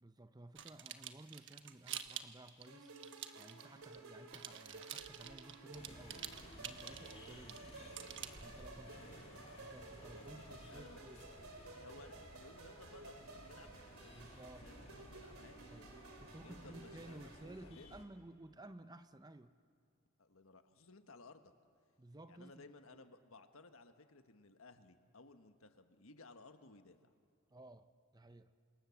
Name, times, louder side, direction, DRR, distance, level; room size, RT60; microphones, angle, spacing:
voice 1, 0.0-6.3 6.6-7.6 8.4-9.2 9.6-11.3 14.1-14.7 15.7-19.5 22.0-23.1 27.5-28.5, right 1 dB, 20° right, 11 dB, 0.7 m, -56 dB
sound 1, 0.5-4.0 4.3-8.8, right 10 dB, 60° right, 1.2 m, -48 dB
sound 2, 2.7-17.4, right 3 dB, 85° right, 2.9 m, -55 dB
sound 3, 5.7-18.1, left 1 dB, 30° left, 2.8 m, -57 dB
voice 2, 8.4-9.5 10.0-11.0 11.6-13.7 14.6-15.6 16.4-18.0 20.2-21.5 22.3-27.1, left 3 dB, 75° left, 8 dB, 1.4 m, -59 dB
27.0 x 26.0 x 7.2 m, 2.2 s
head